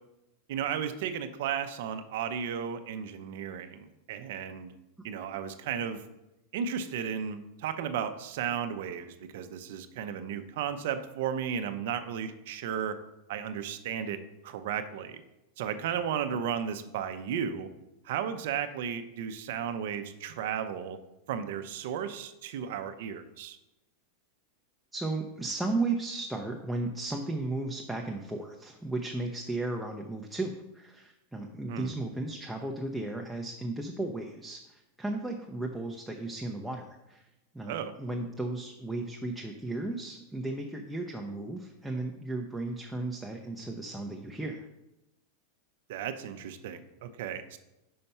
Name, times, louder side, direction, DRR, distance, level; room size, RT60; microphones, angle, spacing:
voice 1, 0.5-4.7 5.0-6.0 6.5-13.0 13.3-15.2 15.6-17.7 18.0-21.0 21.3-23.6 31.7-31.9 37.7-37.9 45.9-47.6, right 8 dB, 65° right, 9 dB, 0.6 m, -34 dB
voice 2, 24.9-37.3 37.5-44.7, right 2 dB, 5° right, 0 dB, 0.6 m, -35 dB
5.6 x 4.3 x 5.4 m, 0.92 s
supercardioid pair, 135°, 0 cm